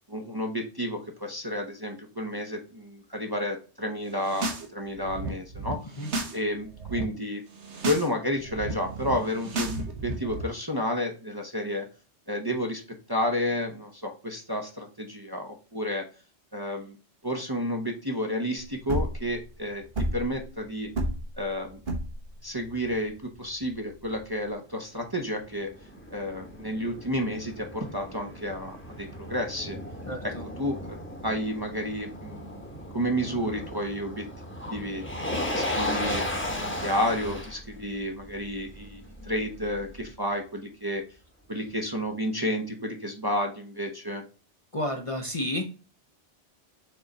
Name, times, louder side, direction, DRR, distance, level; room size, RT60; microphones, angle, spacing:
voice 1, 0.1-5.8 6.3-7.4 7.8-11.9 12.3-12.8 13.1-16.0 16.5-17.0 17.2-19.8 20.1-20.9 21.4-21.8 22.4-25.7 26.1-29.8 30.2-30.3 30.6-31.0 31.2-32.6 32.9-34.3 34.7-36.2 36.6-41.0 41.5-44.2, equal, 25° right, 2 dB, 0.7 m, -31 dB
sound 1, 4.1-4.7 4.9-6.4 6.6-7.0 7.5-8.1 8.3-10.4, right 3 dB, 75° right, 1.4 m, -34 dB
sound 2, 18.6-24.5, right 1 dB, 50° right, 1.5 m, -32 dB
Motor vehicle (road), 25.0-40.1, left 1 dB, 10° left, 1.1 m, -36 dB
voice 2, 30.1-30.5 44.7-45.6, left 1 dB, 35° left, 3 dB, 0.7 m, -31 dB
6.6 x 3.9 x 4.1 m, 0.35 s
omnidirectional pair, 1.2 m